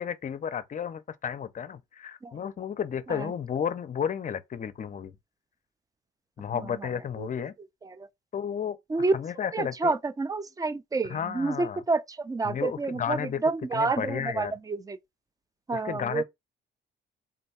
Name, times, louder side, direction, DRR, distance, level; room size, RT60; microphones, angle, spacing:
voice 1, 0.0-5.1 6.4-7.5 8.3-8.8 9.1-9.9 11.1-11.8 12.4-13.4 13.7-14.5 15.7-16.2, left 8 dB, 40° left, 0.5 m, -32 dB
voice 2, 9.5-15.0 15.7-16.2, right 3 dB, 20° right, 0.4 m, -29 dB
3.8 x 2.2 x 4.1 m
cardioid pair, 90°, 20 cm